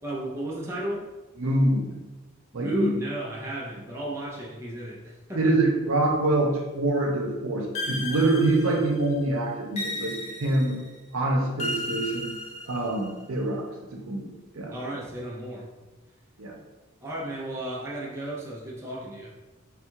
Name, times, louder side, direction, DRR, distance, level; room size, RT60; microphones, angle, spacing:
voice 1, 0.0-1.1 2.5-5.6 14.7-15.7 17.0-19.3, right 1 dB, 10° right, -4 dB, 0.6 m, -33 dB
voice 2, 1.4-2.0 2.5-2.9 5.3-10.8 11.1-12.3 12.7-14.7 16.4-16.6, right 2 dB, 75° right, 1 dB, 0.7 m, -25 dB
sound 1, 7.8-9.1 9.8-10.9 11.6-13.1, left 1 dB, 30° left, 0.6 m, -34 dB
3.6 x 2.4 x 4.5 m, 1.1 s
head